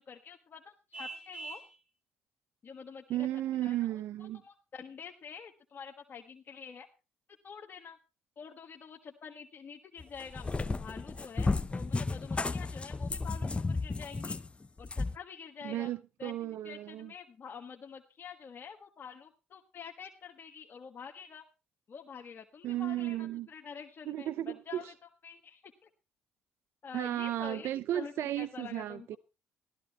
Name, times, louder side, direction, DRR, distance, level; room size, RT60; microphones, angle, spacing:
voice 1, 0.0-1.6 2.6-3.3 3.6-4.0 4.3-6.9 7.4-8.0 8.4-14.4 14.8-15.9 16.2-21.4 21.9-24.9 25.2-25.9 26.8-29.2, left 6 dB, 50° left, 1.5 m, -47 dB
Vehicle horn car horn honking, 0.9-1.8, right 2 dB, 25° right, 6.5 m, -43 dB
voice 2, 3.1-4.4 15.6-17.1 22.6-23.5 24.1-24.9 26.9-29.2, right 13 dB, 70° right, 0.6 m, -34 dB
Cat, 10.0-15.2, left 3 dB, 25° left, 0.8 m, -33 dB
14.0 x 13.0 x 4.2 m
hypercardioid pair, 55°, 4 cm